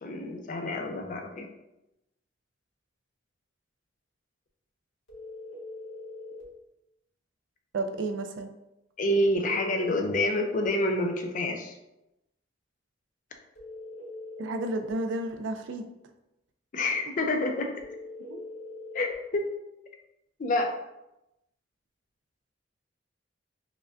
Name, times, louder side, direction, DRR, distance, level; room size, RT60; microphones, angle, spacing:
voice 1, 0.0-1.5 9.0-11.7 16.7-17.7 18.9-19.5 20.4-20.7, left 1 dB, 45° left, 4 dB, 0.4 m, -28 dB
sound 1, 5.1-6.5 9.3-10.7 13.6-15.0 17.8-19.2, left 3 dB, 80° left, 1.3 m, -42 dB
voice 2, 7.7-8.5 14.4-15.8 18.3-18.4, right 2 dB, 75° right, 6 dB, 0.4 m, -32 dB
5.0 x 2.2 x 2.4 m, 0.91 s
head